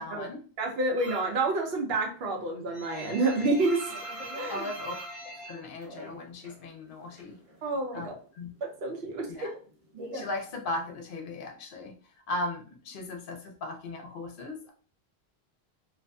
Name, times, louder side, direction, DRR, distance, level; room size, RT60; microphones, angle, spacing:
voice 1, 0.0-0.4 4.5-4.9 5.2-7.4 7.9-8.1 8.3-8.5 9.2-9.5 10.1-12.0 12.3-14.7, left 2 dB, 60° left, 3 dB, 0.7 m, -37 dB
voice 2, 0.6-3.9 4.4-4.6 7.6-8.1 8.6-9.5, right 2 dB, 70° right, 2 dB, 0.9 m, -29 dB
sound 1, 1.0-1.4 1.8-6.6 6.9-7.9 8.2-11.0, right 1 dB, 40° right, 0.6 m, -42 dB
2.5 x 2.5 x 2.2 m, 0.40 s
omnidirectional pair, 1.1 m